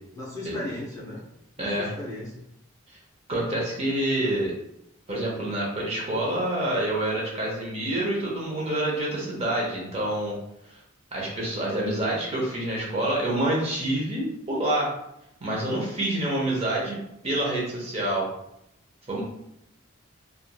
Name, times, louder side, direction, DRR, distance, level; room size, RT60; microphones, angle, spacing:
voice 1, 0.1-1.2 1.6-2.4, left 1 dB, 15° left, -7 dB, 0.7 m, -36 dB
voice 2, 1.6-1.9 3.3-4.5 5.1-10.3 11.1-14.9 15.4-17.0 17.2-18.3 19.1-19.2, right 1 dB, 30° right, -4 dB, 0.7 m, -27 dB
2.9 x 2.4 x 2.2 m, 0.80 s
head